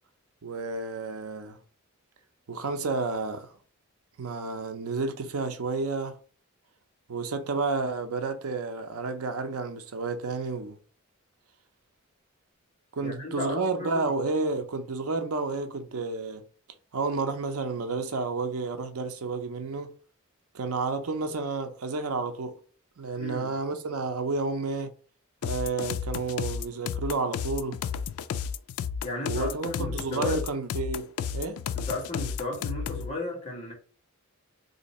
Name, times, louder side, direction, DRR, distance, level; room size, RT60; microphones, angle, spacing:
voice 1, 0.4-1.6 2.5-3.5 4.2-6.2 7.1-10.8 12.9-16.4 16.9-19.9 20.5-22.6 23.0-24.9 25.4-27.8 29.2-31.6, right 3 dB, 85° right, 0.6 m, -31 dB
voice 2, 13.0-14.0 23.1-23.5 29.0-30.4 31.7-33.7, left 2 dB, 30° left, 1.3 m, -35 dB
sound 1, 25.4-33.1, left 7 dB, 80° left, 0.3 m, -32 dB
2.8 x 2.6 x 4.0 m
head